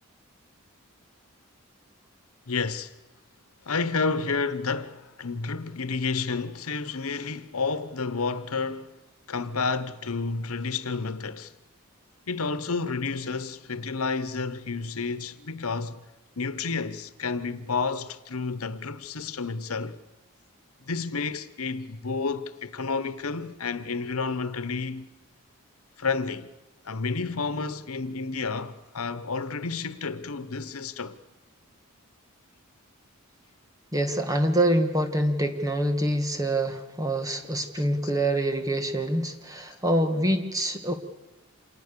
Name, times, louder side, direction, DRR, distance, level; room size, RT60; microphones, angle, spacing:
voice 1, 2.5-2.9 3.6-8.9 9.3-11.5 12.3-16.0 16.4-20.0 20.9-25.1 26.0-26.5 26.8-31.2, left 4 dB, 85° left, 1.1 m, -30 dB
voice 2, 33.9-40.9, right 1 dB, 15° right, 1.8 m, -25 dB
27.0 x 19.0 x 6.9 m
head